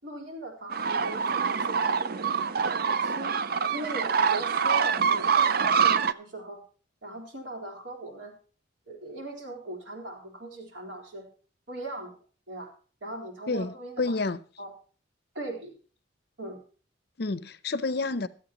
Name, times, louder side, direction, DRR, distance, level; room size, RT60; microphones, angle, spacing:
voice 1, 0.0-2.3 2.6-6.6 7.0-8.3 8.9-11.3 11.7-12.2 12.5-12.7 13.0-14.2 14.6-14.7 15.3-15.8 16.4-16.6, right 2 dB, 65° right, 3.8 m, -39 dB
sound 1, 0.7-6.1, right 6 dB, 50° right, 0.5 m, -25 dB
voice 2, 13.5-14.4 17.2-18.3, left 3 dB, 50° left, 0.6 m, -29 dB
24.0 x 8.5 x 3.0 m
head